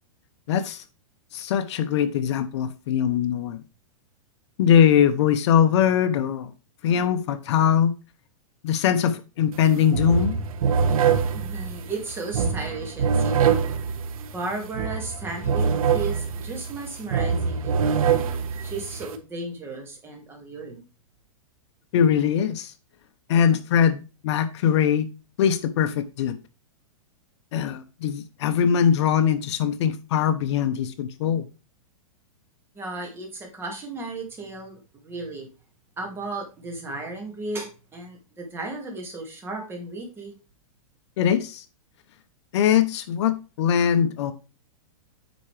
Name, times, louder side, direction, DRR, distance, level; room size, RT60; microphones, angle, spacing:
voice 1, 0.5-0.8 1.3-3.6 4.6-6.5 6.8-7.9 8.6-10.4 21.9-22.7 23.3-25.1 25.4-26.4 27.5-31.4 41.2-41.6 42.5-44.3, left 8 dB, 50° left, 10 dB, 0.8 m, -21 dB
sound 1, 9.5-9.7 9.9-19.2, right 6 dB, 75° right, 1.3 m, -24 dB
voice 2, 11.3-13.6 14.3-18.1 18.5-20.8 32.7-35.5 36.0-40.4, right 3 dB, 15° right, 2 dB, 2.2 m, -35 dB
9.3 x 5.6 x 3.3 m, 0.31 s
supercardioid pair, 160°, 18 cm